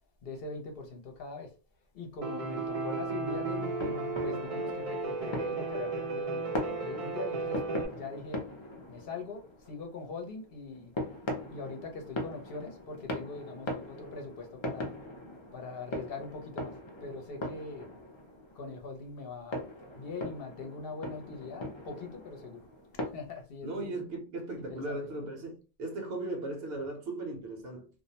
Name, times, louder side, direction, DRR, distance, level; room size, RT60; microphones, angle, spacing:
voice 1, 0.2-1.5 1.9-7.6 7.9-8.4 8.9-10.9 11.5-14.9 15.5-16.7 17.0-17.9 18.5-19.6 19.9-22.6 23.1-24.0 24.6-25.0, left 4 dB, 65° left, 0.8 m, -42 dB
Piano, 2.2-7.9, right 3 dB, 50° right, 0.4 m, -34 dB
sound 1, 3.2-23.1, left 1 dB, 40° left, 0.4 m, -41 dB
voice 2, 23.6-27.9, right 2 dB, 70° right, 0.9 m, -37 dB
2.4 x 2.0 x 2.7 m
omnidirectional pair, 1.1 m